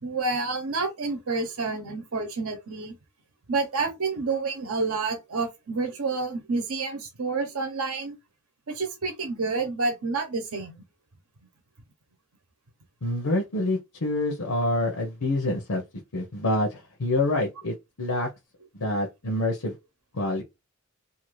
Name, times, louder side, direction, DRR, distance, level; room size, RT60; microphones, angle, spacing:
voice 1, 0.0-2.9 3.5-8.1 8.7-10.8, right 3 dB, 75° right, 0.8 m, -29 dB
voice 2, 13.0-15.8 16.1-18.3 18.7-19.7 20.1-20.4, left 2 dB, 85° left, 0.8 m, -27 dB
2.7 x 2.5 x 3.1 m
head